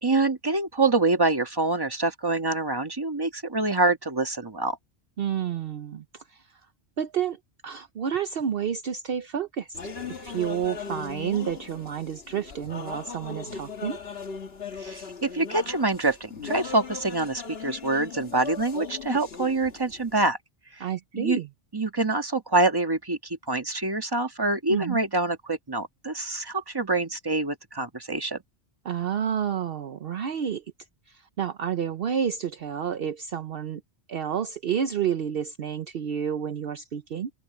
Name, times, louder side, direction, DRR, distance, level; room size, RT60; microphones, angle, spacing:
voice 1, 0.0-4.8 14.8-20.4 21.1-21.4 21.7-28.4, right 2 dB, 20° right, 1.6 m, -26 dB
voice 2, 5.2-6.6 7.0-9.8 10.1-14.0 20.8-21.5 24.7-25.0 28.8-30.6 31.1-33.8 34.1-37.3, right 8 dB, 60° right, 0.9 m, -30 dB
sound 1, 9.7-20.2, left 5 dB, 60° left, 1.6 m, -39 dB
open air
omnidirectional pair, 1.2 m